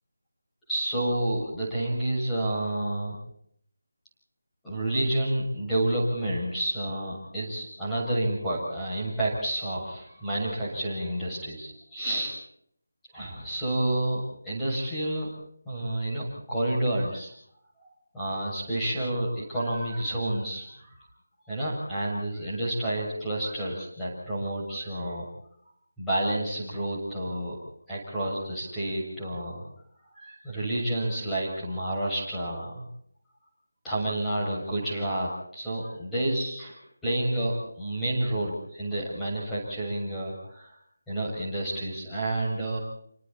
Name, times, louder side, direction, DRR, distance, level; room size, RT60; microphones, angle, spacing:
voice 1, 0.7-3.2 4.6-12.3 13.1-15.3 15.7-17.3 18.1-20.9 21.5-25.3 26.0-27.6 27.9-29.6 30.1-32.8 33.8-36.8 37.0-40.7 41.1-42.8, right 1 dB, 5° left, -8 dB, 7.3 m, -29 dB
28.5 x 26.0 x 4.3 m, 0.66 s
figure-of-eight pair, 170°, 0 cm